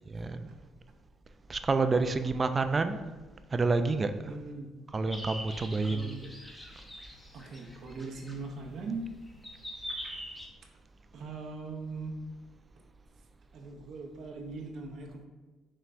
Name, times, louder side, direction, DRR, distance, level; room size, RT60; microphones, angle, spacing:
voice 1, 0.1-0.5 1.5-3.0 3.5-4.1 4.9-6.1, right 3 dB, 30° right, 9 dB, 0.3 m, -28 dB
voice 2, 4.3-4.7 5.8-6.3 7.3-9.1 11.1-12.1 13.5-15.3, right 3 dB, 65° right, 1 dB, 0.6 m, -40 dB
sound 1, 5.1-10.5, equal, 10° left, 0.8 m, -44 dB
5.6 x 3.1 x 2.5 m, 1.2 s
cardioid pair, 95°, 0 cm